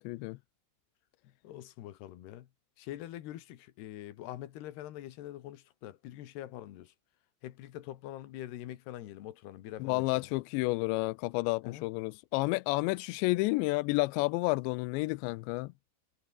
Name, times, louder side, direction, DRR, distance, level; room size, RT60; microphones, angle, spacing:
voice 1, 0.1-0.4 9.8-15.7, left 23 dB, 85° left, 2.5 m, -30 dB
voice 2, 1.4-2.5 2.8-6.9 7.4-10.3 11.6-11.9, left 13 dB, 65° left, 3.2 m, -44 dB
omnidirectional pair, 5.7 m